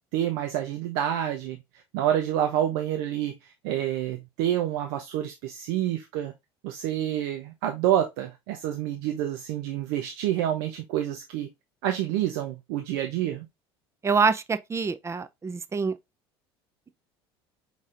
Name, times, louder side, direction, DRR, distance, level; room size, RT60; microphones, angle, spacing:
voice 1, 0.1-1.6 1.9-6.3 6.6-11.5 11.8-13.5, right 11 dB, 70° right, 0.7 m, -28 dB
voice 2, 14.0-15.9, right 5 dB, 20° right, 0.5 m, -25 dB
5.0 x 4.1 x 2.5 m
hypercardioid pair, 80°, 13 cm